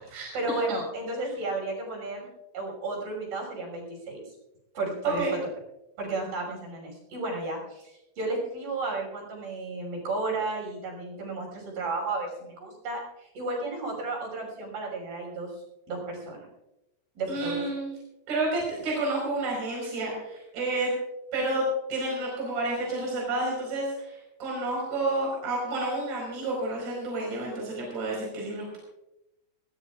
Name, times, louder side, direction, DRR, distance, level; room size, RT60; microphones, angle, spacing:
voice 1, 0.0-2.3 2.5-4.2 4.7-5.4 6.0-15.5 15.9-16.5 17.2-17.6, right 2 dB, 55° right, -1 dB, 7.9 m, -33 dB
voice 2, 17.3-17.9 18.3-20.9 21.3-21.6 21.9-28.8, right 2 dB, 80° right, -3 dB, 7.2 m, -30 dB
21.5 x 19.5 x 2.5 m, 0.93 s
omnidirectional pair, 5.1 m